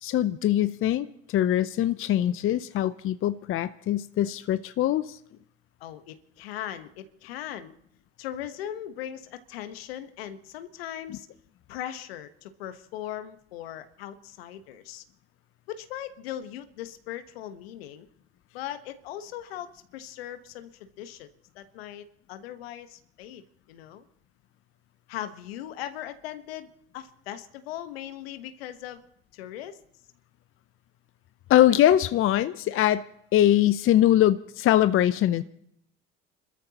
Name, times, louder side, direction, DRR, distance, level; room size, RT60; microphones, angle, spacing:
voice 1, 0.0-5.2 31.5-33.0 33.3-35.4, left 12 dB, 45° left, 14 dB, 0.6 m, -22 dB
voice 2, 5.8-7.7 8.2-11.3 11.7-15.0 15.7-18.1 18.5-21.3 21.5-23.4 23.7-24.0 25.1-26.7 26.9-29.0 29.3-29.8, left 11 dB, 80° left, 10 dB, 1.2 m, -39 dB
29.5 x 13.5 x 2.9 m, 0.72 s
hypercardioid pair, 65°, 30 cm